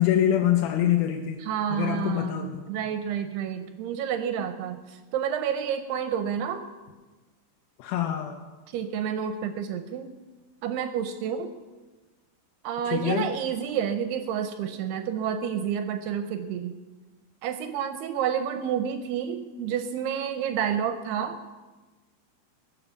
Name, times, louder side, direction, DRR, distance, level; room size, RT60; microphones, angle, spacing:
voice 1, 0.0-1.4 1.7-2.7 7.8-8.4 12.9-13.3, left 11 dB, 75° left, 4 dB, 2.4 m, -25 dB
voice 2, 1.4-6.6 8.7-10.1 10.6-11.5 12.6-16.8 17.4-21.5, right 8 dB, 75° right, 8 dB, 2.6 m, -29 dB
21.5 x 7.4 x 7.0 m, 1.3 s
omnidirectional pair, 4.9 m